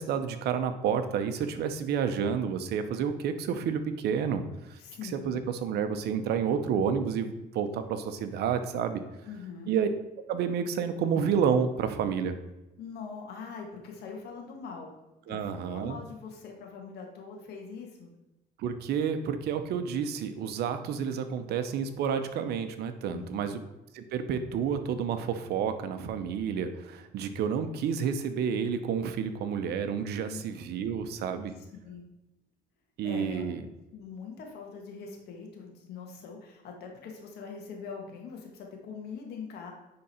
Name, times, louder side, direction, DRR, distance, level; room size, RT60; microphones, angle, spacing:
voice 1, 0.0-9.0 9.7-9.9 10.3-12.4 15.3-16.0 18.6-23.6 23.9-31.5 33.0-33.6, right 7 dB, 75° right, 9 dB, 0.8 m, -30 dB
voice 2, 4.8-5.4 9.2-9.7 12.8-14.9 15.3-18.1 23.1-23.6 30.3-30.4 31.8-32.0 33.0-33.5 33.9-39.7, left 5 dB, 75° left, 2 dB, 1.8 m, -42 dB
9.5 x 3.8 x 4.4 m, 0.96 s
cardioid pair, 110°, 17 cm